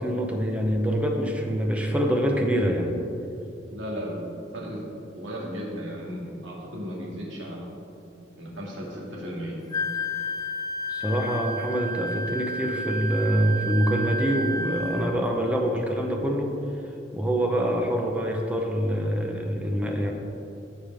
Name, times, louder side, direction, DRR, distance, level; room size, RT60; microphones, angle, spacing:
voice 1, 0.0-3.0 10.9-16.5 17.1-20.1, equal, 5° right, 1 dB, 0.7 m, -25 dB
voice 2, 3.7-4.8 5.2-7.7 8.4-9.6, equal, 90° right, -4 dB, 2.1 m, -35 dB
Wind instrument woodwind instrument, 9.7-15.2, left 1 dB, 20° left, 0.3 m, -31 dB
14.5 x 5.1 x 3.5 m, 2.7 s
head